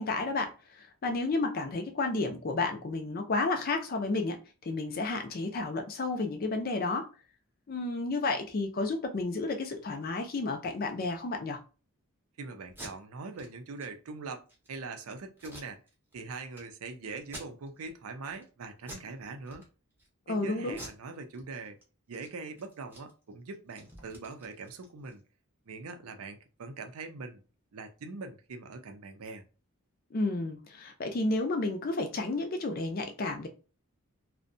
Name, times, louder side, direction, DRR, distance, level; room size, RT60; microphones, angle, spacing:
voice 1, 0.0-7.1 7.7-11.6 20.3-20.8 30.1-33.5, left 3 dB, 40° left, 0.4 m, -31 dB
voice 2, 12.4-15.8 16.1-19.7 20.3-21.8 22.1-25.2 25.7-27.4 27.7-29.5, right 3 dB, 75° right, 0.5 m, -42 dB
Packing tape duct tape, 12.6-12.9 13.3-13.5 13.8-13.9 14.3-14.7 15.4-16.2 16.5-16.6 17.2-17.9 18.3-18.5 18.8-19.1 19.4-20.1 20.7-21.8 22.1-22.3 22.6-25.2, right 1 dB, 10° right, 0.6 m, -48 dB
2.6 x 2.1 x 2.5 m
head